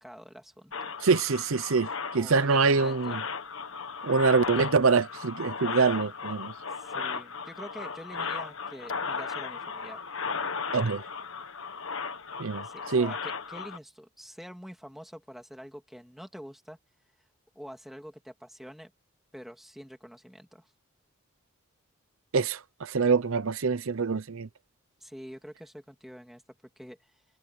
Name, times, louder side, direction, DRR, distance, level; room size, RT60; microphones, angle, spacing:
voice 1, 0.0-0.9 2.1-3.2 6.8-10.0 12.6-16.8 17.5-18.9 19.3-20.7 25.0-26.4 26.8-27.1, equal, ahead, 2.7 m, -46 dB
sound 1, 0.7-13.8, left 5 dB, 65° left, 1.5 m, -36 dB
voice 2, 1.0-3.2 4.0-6.5 10.7-11.0 12.4-13.1 22.3-24.5, right 4 dB, 70° right, 0.7 m, -25 dB
head